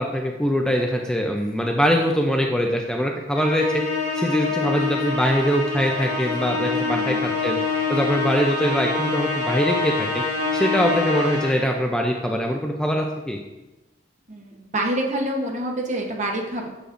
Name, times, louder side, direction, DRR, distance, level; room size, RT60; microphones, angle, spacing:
voice 1, 0.0-3.8 4.1-7.6 7.9-10.2 10.5-13.4, equal, 5° left, 1 dB, 0.4 m, -23 dB
Musical instrument, 3.3-11.8, left 4 dB, 40° left, 1.5 m, -25 dB
voice 2, 6.8-7.2 14.3-16.7, right 1 dB, 40° right, 1 dB, 0.9 m, -27 dB
6.8 x 6.6 x 2.5 m, 1.0 s
head